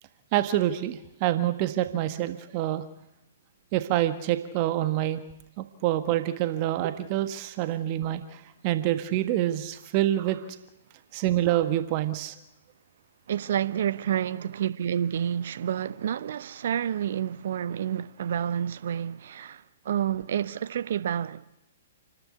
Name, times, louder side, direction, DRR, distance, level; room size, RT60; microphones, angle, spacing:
voice 1, 0.3-2.8 3.7-5.2 5.6-10.4 11.1-12.3, right 13 dB, 35° right, 1.5 m, -26 dB
voice 2, 13.3-21.5, right 9 dB, 55° right, 0.9 m, -29 dB
29.0 x 12.5 x 8.3 m
figure-of-eight pair, 115°, 0 cm